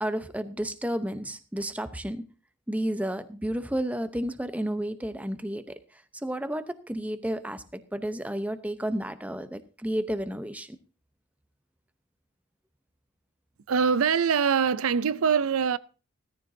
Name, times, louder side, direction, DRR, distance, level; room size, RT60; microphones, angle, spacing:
voice 1, 0.0-2.3 2.7-10.8, right 1 dB, 5° right, 0.7 m, -32 dB
voice 2, 13.7-15.8, right 6 dB, 90° right, 0.5 m, -23 dB
16.5 x 14.0 x 2.7 m
head